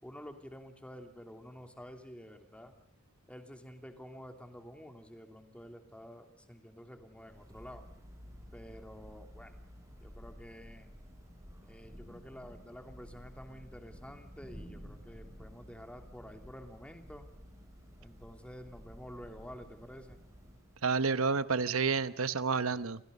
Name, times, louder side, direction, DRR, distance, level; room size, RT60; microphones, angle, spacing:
voice 1, 0.0-2.7 3.3-7.8 8.5-9.6 10.0-10.9 11.7-17.3 18.0-20.2, equal, 5° left, 5 dB, 3.0 m, -50 dB
Thunder / Rain, 7.0-21.2, equal, 15° right, 6.5 m, -52 dB
voice 2, 20.8-23.0, right 5 dB, 80° right, 13 dB, 1.0 m, -30 dB
29.5 x 27.5 x 5.4 m, 0.66 s
head